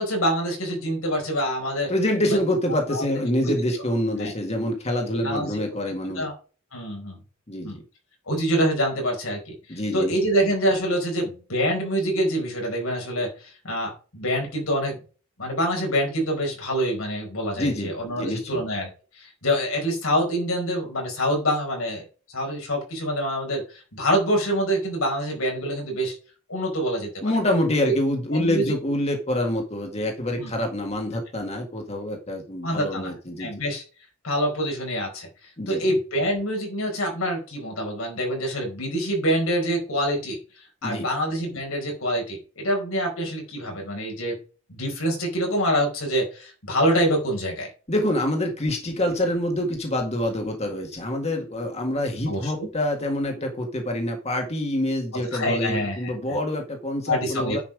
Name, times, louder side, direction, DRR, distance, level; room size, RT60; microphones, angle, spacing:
voice 1, 0.0-1.9 2.3-2.4 2.9-3.0 4.2-4.3 5.1-5.6 6.1-6.3 6.7-7.2 7.6-7.8 8.3-15.0 15.4-18.9 19.1-26.1 26.5-27.1 27.8-27.9 28.3-28.7 30.4-30.5 32.6-33.1 33.4-33.8 34.2-44.4 44.7-47.7 52.3-52.7 55.3-56.4 57.1-57.6, equal, 90° left, 1 dB, 4.7 m, -26 dB
voice 2, 1.9-6.2 7.5-7.8 9.7-10.1 17.6-18.6 27.2-33.5 35.6-35.8 40.8-41.1 47.9-57.6, left 1 dB, 30° left, 3 dB, 1.8 m, -26 dB
10.0 x 5.7 x 4.9 m, 0.36 s
head